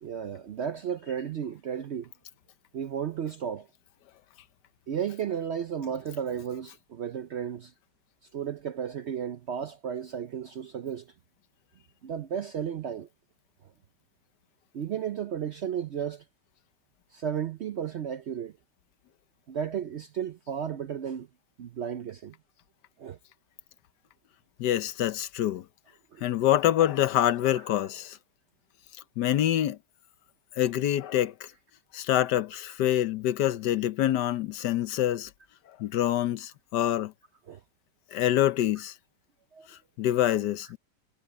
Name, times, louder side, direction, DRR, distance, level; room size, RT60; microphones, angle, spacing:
voice 1, 0.0-2.1 2.7-3.7 4.9-7.7 8.3-11.1 12.0-13.1 14.7-16.2 17.1-18.5 19.5-21.3 21.6-22.3 23.0-23.2 26.1-26.3 27.5-27.6 37.5-37.6 39.5-39.7, right 8 dB, 65° right, 0.7 m, -33 dB
voice 2, 24.6-25.6 26.2-28.2 29.2-29.8 30.6-31.5 31.9-35.3 35.8-37.1 38.1-38.9 39.7-40.8, left 12 dB, 85° left, 1.4 m, -26 dB
omnidirectional pair, 1.8 m